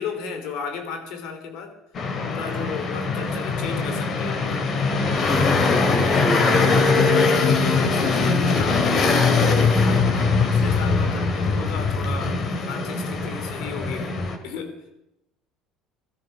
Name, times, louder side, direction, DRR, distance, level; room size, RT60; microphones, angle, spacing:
voice 1, 0.0-1.8 2.2-5.0 7.6-10.1 10.5-14.2 14.4-14.8, left 6 dB, 70° left, 7 dB, 3.4 m, -34 dB
sound 1, 1.9-14.4, left 4 dB, 45° left, 2.6 m, -21 dB
voice 2, 5.3-6.9, equal, 5° left, 7 dB, 2.4 m, -28 dB
17.5 x 13.0 x 6.1 m, 0.87 s
supercardioid pair, 90°, 0 cm